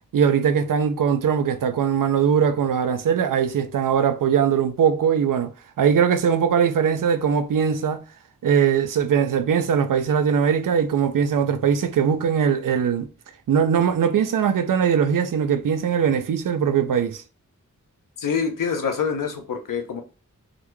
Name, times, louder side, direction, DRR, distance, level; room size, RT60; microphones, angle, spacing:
voice 1, 0.1-8.0 8.4-13.1 13.5-17.2, right 7 dB, 80° right, 0.5 m, -21 dB
voice 2, 18.2-20.0, left 6 dB, 90° left, 0.8 m, -26 dB
3.8 x 2.2 x 3.0 m
wide cardioid pair, 95°, 32 cm